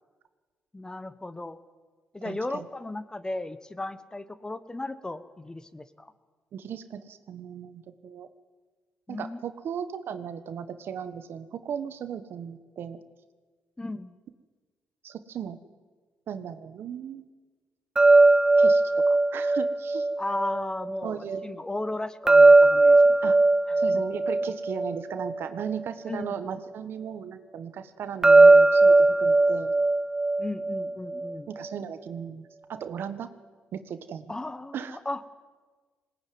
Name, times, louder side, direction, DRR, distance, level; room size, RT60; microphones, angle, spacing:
voice 1, 0.7-1.6 2.1-6.1 9.1-9.4 13.8-14.1 20.2-23.2 23.9-24.0 26.1-26.4 30.4-31.5 34.3-35.2, left 2 dB, 15° left, 13 dB, 1.3 m, -35 dB
voice 2, 2.2-2.6 6.5-8.3 9.1-13.0 15.0-15.6 16.3-17.3 18.6-20.1 21.0-21.5 23.2-23.4 23.8-29.7 31.5-33.3 33.7-34.3 34.7-35.0, right 8 dB, 65° right, 11 dB, 1.4 m, -36 dB
sound 1, 18.0-21.0 22.3-25.8 28.2-31.3, right 2 dB, 20° right, 0.9 m, -19 dB
20.5 x 18.5 x 9.5 m, 1.4 s
cardioid pair, 75°, 4 cm